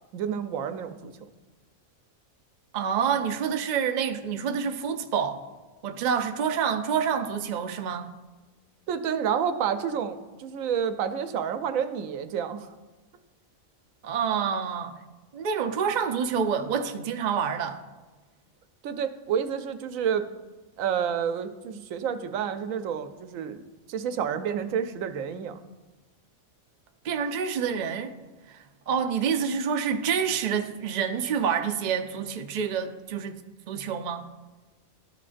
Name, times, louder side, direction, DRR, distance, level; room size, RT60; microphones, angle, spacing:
voice 1, 0.1-1.1 8.9-12.7 18.8-20.3 20.8-23.6 23.9-25.6, right 8 dB, 80° right, 1.0 m, -29 dB
voice 2, 2.7-5.4 5.8-8.1 14.0-14.9 15.3-17.8 27.0-28.1 28.5-33.4 33.7-34.2, right 7 dB, 60° right, 0.4 m, -27 dB
13.0 x 6.1 x 2.5 m
omnidirectional pair, 1.4 m